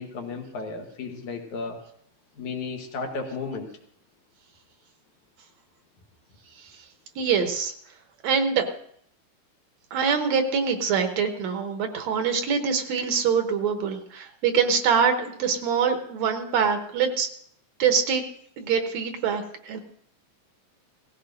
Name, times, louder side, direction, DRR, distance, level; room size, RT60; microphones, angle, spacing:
voice 1, 0.0-1.8 2.4-3.7, left 4 dB, 75° left, 2 dB, 2.8 m, -34 dB
voice 2, 7.2-7.7 8.2-8.7 9.9-17.3 17.8-18.2 18.6-19.8, right 6 dB, 70° right, 5 dB, 2.1 m, -24 dB
18.0 x 15.5 x 2.6 m, 0.65 s
omnidirectional pair, 3.5 m